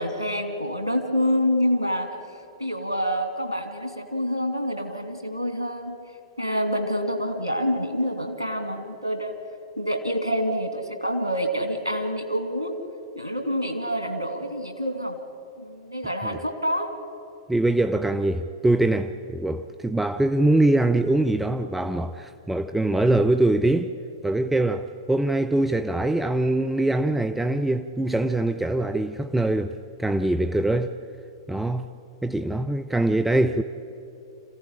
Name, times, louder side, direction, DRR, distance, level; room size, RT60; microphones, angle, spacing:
voice 1, 0.0-2.2 2.6-6.0 6.4-9.4 9.8-12.8 13.2-15.2 15.6-16.9, equal, 90° right, 7 dB, 2.4 m, -27 dB
voice 2, 17.5-23.9 24.2-30.9 31.5-31.9 32.2-33.6, right 2 dB, 5° right, 9 dB, 0.6 m, -23 dB
26.5 x 15.5 x 10.0 m, 2.8 s
figure-of-eight pair, 100°, 2 cm